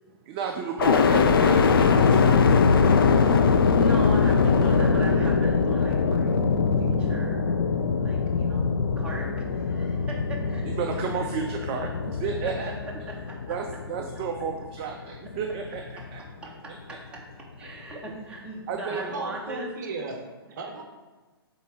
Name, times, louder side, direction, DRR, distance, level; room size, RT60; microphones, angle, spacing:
voice 1, 0.3-2.7 10.7-12.7 13.5-16.2 18.2-18.3 18.7-19.0, right 6 dB, 30° right, 3 dB, 0.4 m, -32 dB
sound 1, 0.8-14.8 15.3-16.0, left 5 dB, 60° left, 0.5 m, -22 dB
voice 2, 3.8-7.5 8.0-11.1 12.8-13.5 16.4-17.2 17.6-19.7 20.6-20.7, right 1 dB, 10° right, -4 dB, 1.1 m, -39 dB
voice 3, 18.9-20.2 20.5-20.8, right 3 dB, 50° right, 4 dB, 0.8 m, -35 dB
8.4 x 3.7 x 3.5 m, 1.2 s
figure-of-eight pair, 130°, 13 cm